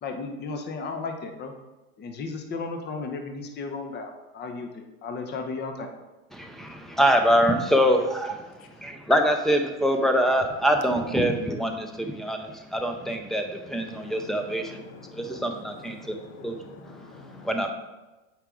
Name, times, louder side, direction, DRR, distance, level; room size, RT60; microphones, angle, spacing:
voice 1, 0.0-1.5 2.0-5.9, left 4 dB, 25° left, 5 dB, 0.9 m, -34 dB
voice 2, 6.3-8.4 8.8-14.8 15.1-16.6 17.4-17.7, equal, ahead, 4 dB, 0.5 m, -24 dB
voice 3, 13.9-17.5, left 4 dB, 65° left, 6 dB, 1.2 m, -46 dB
8.0 x 4.8 x 3.8 m, 1.1 s
hypercardioid pair, 115°, 43 cm